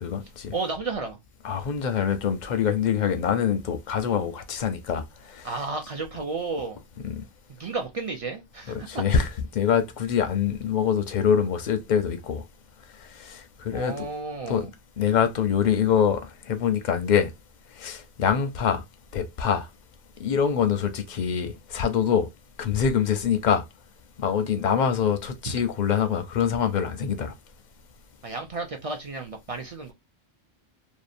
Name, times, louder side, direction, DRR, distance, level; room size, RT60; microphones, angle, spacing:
voice 1, 0.0-0.5 1.4-5.5 7.0-7.2 8.7-12.4 13.0-14.1 14.5-14.7 15.0-17.3 17.8-18.8 19.1-19.7 20.2-22.3 22.6-23.6 24.2-27.3, left 8 dB, 55° left, 0.5 m, -25 dB
voice 2, 0.5-1.2 5.4-6.8 7.6-9.0 13.3-13.4 13.7-14.7 28.2-29.9, right 3 dB, 50° right, 0.4 m, -32 dB
2.7 x 2.1 x 2.4 m
omnidirectional pair, 1.1 m